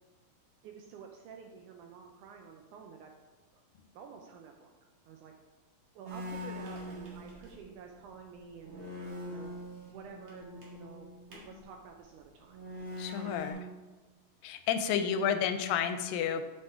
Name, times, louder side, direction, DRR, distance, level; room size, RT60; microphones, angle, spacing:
voice 1, 0.6-3.1 3.5-3.6 3.9-4.7 5.1-5.3 6.0-11.1 11.4-12.6 13.1-13.6 14.9-15.4, right 6 dB, 80° right, 3 dB, 1.8 m, -50 dB
sound 1, 6.0-7.7 8.1-8.2 8.5-11.6 12.4-13.5, left 1 dB, 45° right, 2.0 m, -43 dB
voice 2, 13.0-13.6 14.4-16.4, left 8 dB, 85° left, 9 dB, 2.3 m, -31 dB
7.4 x 6.1 x 3.5 m, 1.2 s
omnidirectional pair, 4.0 m